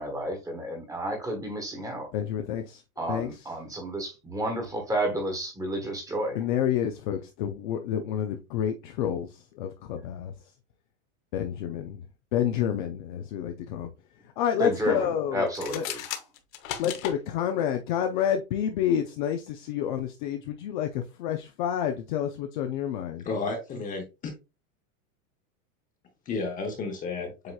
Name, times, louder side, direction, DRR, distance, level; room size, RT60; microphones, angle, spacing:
voice 1, 0.0-2.1 3.0-6.4 14.6-15.1 15.3-16.0, right 1 dB, 10° right, 1.2 m, -31 dB
voice 2, 2.1-2.8 3.1-3.3 6.3-10.3 11.3-12.0 12.3-13.9 14.4-15.8 16.8-23.2, left 9 dB, 40° left, 0.4 m, -29 dB
sound 1, 15.5-17.2, left 10 dB, 70° left, 1.1 m, -35 dB
voice 3, 23.3-24.3 26.3-27.5, left 4 dB, 20° left, 0.8 m, -32 dB
7.8 x 2.8 x 2.3 m
supercardioid pair, 155°, 42 cm